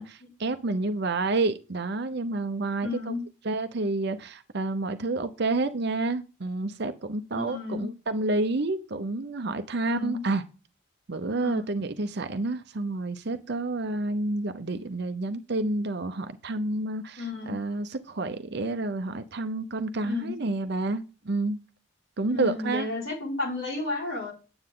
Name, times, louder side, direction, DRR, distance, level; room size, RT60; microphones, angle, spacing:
voice 1, 0.0-3.2 3.4-10.4 11.1-21.6 22.2-22.9, right 2 dB, 55° right, 0.7 m, -29 dB
voice 2, 2.8-3.2 7.3-7.9 9.8-10.2 11.4-11.7 17.2-17.5 20.0-20.3 22.3-24.3, left 3 dB, 85° left, 5.0 m, -32 dB
9.7 x 7.8 x 3.8 m
head